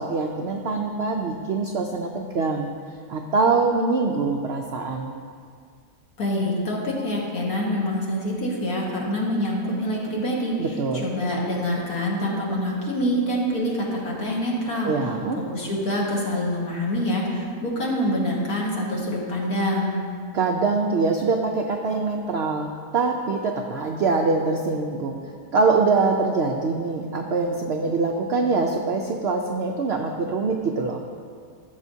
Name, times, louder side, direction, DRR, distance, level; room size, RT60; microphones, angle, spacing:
voice 1, 0.0-2.7 3.1-5.1 10.6-11.1 14.8-15.4 20.3-25.2 25.5-31.0, right 4 dB, 70° right, 2 dB, 0.6 m, -24 dB
voice 2, 6.2-10.5 11.0-14.9 15.5-20.0, equal, 65° left, -4 dB, 2.1 m, -25 dB
14.5 x 7.4 x 2.7 m, 2.1 s
omnidirectional pair, 1.7 m